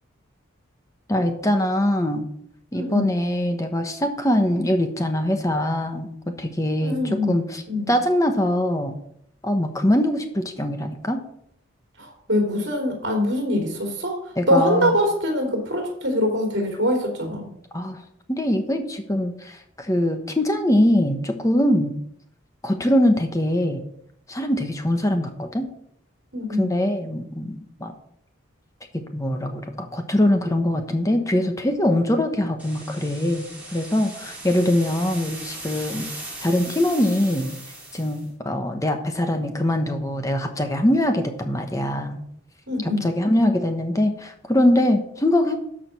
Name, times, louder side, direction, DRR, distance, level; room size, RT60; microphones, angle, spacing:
voice 1, 1.1-2.3 2.7-6.1 6.4-7.6 7.9-8.9 9.4-11.2 14.4-15.0 17.7-18.0 18.3-21.9 22.6-23.8 24.3-25.7 26.6-27.9 28.9-36.1 36.4-37.5 37.9-42.2 42.8-45.6, left 1 dB, 15° left, 6 dB, 1.1 m, -22 dB
voice 2, 2.7-3.1 6.8-7.3 7.7-7.9 12.0-14.2 14.5-17.5 26.3-26.7 42.7-43.0, left 1 dB, 55° right, 2 dB, 3.4 m, -23 dB
sound 1, 32.6-38.3, right 2 dB, 5° right, 2.9 m, -38 dB
13.0 x 5.0 x 6.1 m, 0.71 s
head